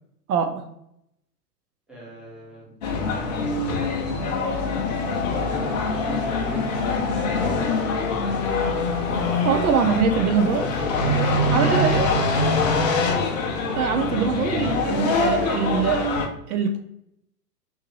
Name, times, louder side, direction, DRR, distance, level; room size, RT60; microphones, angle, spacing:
voice 1, 0.3-0.6 9.4-10.6 11.5-12.1 13.7-16.1 16.5-16.8, right 6 dB, 60° right, 6 dB, 0.6 m, -23 dB
voice 2, 1.9-2.7 5.5-7.7 10.2-13.2, equal, ahead, -5 dB, 0.9 m, -37 dB
sound 1, 2.8-16.3, left 3 dB, 30° left, 0.4 m, -24 dB
3.5 x 2.7 x 3.1 m, 0.77 s
hypercardioid pair, 115°, 49 cm